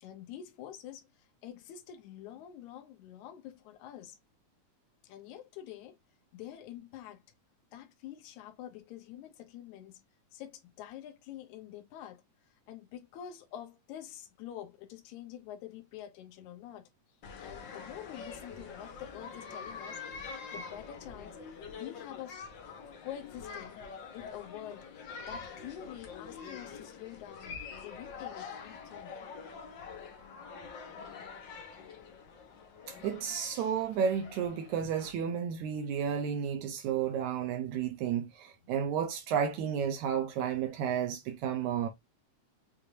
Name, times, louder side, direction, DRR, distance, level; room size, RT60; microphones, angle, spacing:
voice 1, 0.0-4.2 5.0-6.0 6.3-7.2 7.7-10.0 10.3-12.2 12.7-16.9 17.4-21.4 21.7-22.4 22.7-29.2 34.8-34.9, left 11 dB, 80° left, 2.3 m, -47 dB
sound 1, 17.2-35.1, left 5 dB, 60° left, 1.2 m, -45 dB
voice 2, 32.9-41.9, right 8 dB, 80° right, 2.1 m, -32 dB
6.5 x 2.6 x 2.8 m
omnidirectional pair, 3.4 m